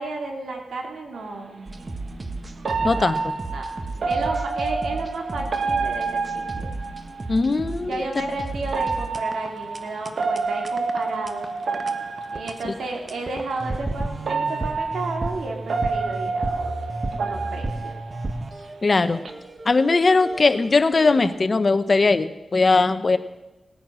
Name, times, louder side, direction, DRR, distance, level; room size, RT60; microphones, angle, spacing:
voice 1, 0.0-1.7 2.8-3.1 3.5-3.7 4.1-6.7 7.8-11.5 12.3-16.7 17.2-18.0, right 2 dB, 90° right, 2 dB, 2.6 m, -32 dB
sound 1, 1.1-1.3 2.6-7.4 8.6-12.9 13.7-13.8 14.3-18.7 19.0-19.3, right 4 dB, 65° right, 1.2 m, -28 dB
sound 2, 1.7-21.3, right 2 dB, 30° right, 1.1 m, -34 dB
voice 2, 2.8-3.3 7.3-8.0 18.8-19.2 19.6-23.2, left 3 dB, 40° left, 12 dB, 0.8 m, -19 dB
18.5 x 9.2 x 6.2 m, 1.0 s
cardioid pair, 80°, 0 cm